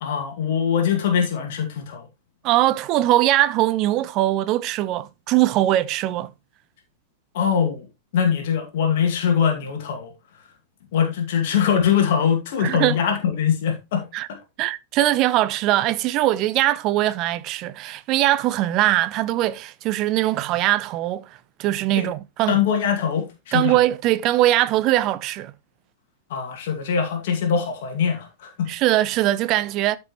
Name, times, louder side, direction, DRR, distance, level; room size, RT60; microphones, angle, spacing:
voice 1, 0.0-2.1 7.3-7.9 8.1-10.1 10.9-14.4 22.0-22.1 22.5-23.8 26.3-28.7, left 7 dB, 55° left, 2.3 m, -22 dB
voice 2, 2.4-6.3 12.6-13.0 14.1-14.3 14.6-21.2 21.6-22.6 23.5-25.5 28.7-30.0, right 15 dB, 40° right, 0.6 m, -21 dB
13.0 x 5.5 x 3.1 m
figure-of-eight pair, 95°, 0 cm